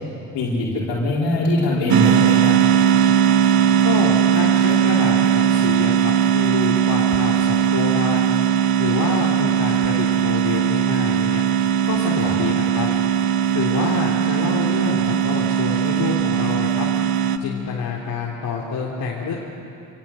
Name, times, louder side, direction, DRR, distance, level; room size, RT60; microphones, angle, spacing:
voice 1, 0.3-2.6 12.2-12.4, left 2 dB, 75° left, -5 dB, 5.6 m, -22 dB
Sleep Study - Volume Test, 1.9-17.4, right 9 dB, 55° right, 1.3 m, -19 dB
voice 2, 3.8-8.3 8.8-11.4 11.9-12.9 13.5-16.9 17.4-19.3, left 5 dB, 50° left, -4 dB, 3.7 m, -27 dB
28.0 x 18.0 x 9.3 m, 2.8 s
supercardioid pair, 70°, 43 cm